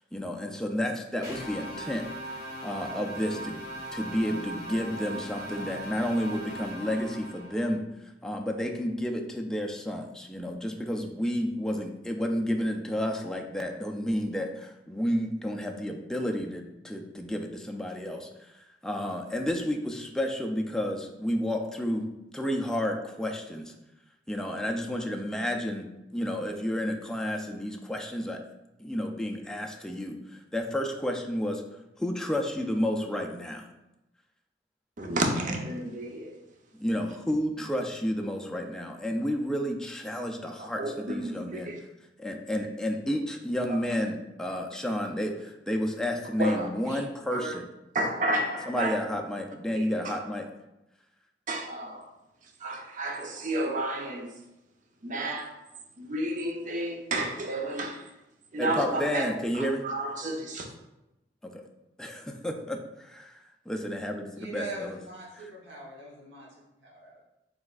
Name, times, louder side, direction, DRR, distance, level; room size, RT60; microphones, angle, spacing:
voice 1, 0.1-3.6 3.9-7.8 8.2-23.7 24.3-25.9 26.1-28.4 28.8-31.6 32.0-33.7 36.7-41.7 42.2-47.7 48.7-50.5 58.6-59.9 61.4-61.6 62.0-65.0, equal, 5° left, 2 dB, 0.3 m, -31 dB
sound 1, 1.2-7.7, right 1 dB, 20° right, 1.3 m, -39 dB
voice 2, 35.0-36.3 40.6-41.8 43.7-43.8 46.4-47.0 47.3-47.5 47.9-48.9 49.7-50.2 51.5-52.1 52.6-54.3 55.0-55.6 56.0-58.1 58.5-59.2 59.5-60.7, right 1 dB, 45° right, 2 dB, 0.6 m, -31 dB
voice 3, 64.3-67.2, right 1 dB, 85° right, -3 dB, 1.1 m, -42 dB
5.0 x 3.4 x 2.4 m, 0.94 s
head